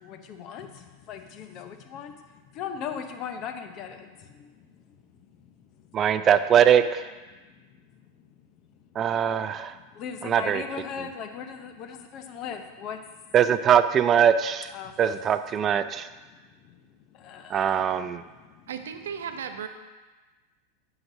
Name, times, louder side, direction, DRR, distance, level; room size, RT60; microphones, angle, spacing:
voice 1, 0.0-2.2 2.5-4.9 5.4-6.0 7.7-8.4 9.0-9.1 9.7-13.3 14.7-15.0 16.3-16.8 17.1-17.8 18.2-18.7, left 7 dB, 45° left, 7 dB, 0.7 m, -39 dB
voice 2, 5.9-7.1 9.0-9.7 10.2-10.6 13.3-14.7 15.0-16.1 17.5-18.2, right 9 dB, 30° right, 12 dB, 0.3 m, -21 dB
voice 3, 18.7-19.7, right 7 dB, 85° right, 8 dB, 0.6 m, -35 dB
9.3 x 5.8 x 2.7 m, 1.3 s
hypercardioid pair, 120°, 0 cm